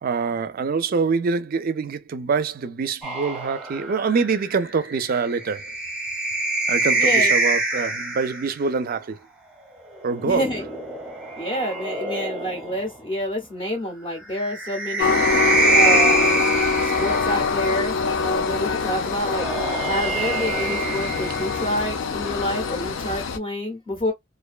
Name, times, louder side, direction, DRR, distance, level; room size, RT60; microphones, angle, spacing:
voice 1, 0.0-5.7 6.7-9.2 10.0-10.4, right 5 dB, 50° right, 0.4 m, -25 dB
sound 1, 3.0-8.6 9.9-12.9 14.3-17.7 19.0-21.9, right 2 dB, 5° right, 0.7 m, -25 dB
voice 2, 7.0-7.3 10.2-10.6 11.4-15.1 15.7-16.5 16.8-19.5 19.8-24.1, equal, 30° left, 0.6 m, -28 dB
Train, 15.0-23.4, left 5 dB, 90° left, 0.5 m, -24 dB
2.4 x 2.2 x 2.3 m
head